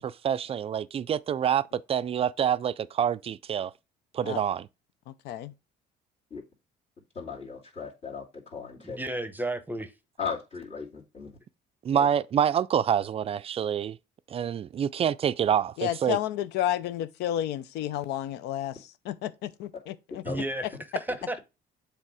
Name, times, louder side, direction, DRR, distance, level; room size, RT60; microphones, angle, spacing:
voice 1, 0.0-3.7 4.1-4.7 11.8-14.0 14.3-16.2, right 9 dB, 35° right, 0.4 m, -27 dB
voice 2, 7.1-9.0 10.2-11.3 11.9-12.1 20.2-20.4, left 5 dB, 40° left, 2.4 m, -37 dB
voice 3, 8.8-9.9 20.3-20.6 20.9-21.4, right 1 dB, 10° right, 0.8 m, -32 dB
voice 4, 15.8-18.8 19.1-20.2, left 12 dB, 85° left, 0.6 m, -31 dB
7.4 x 3.5 x 4.8 m
cardioid pair, 110°, 17 cm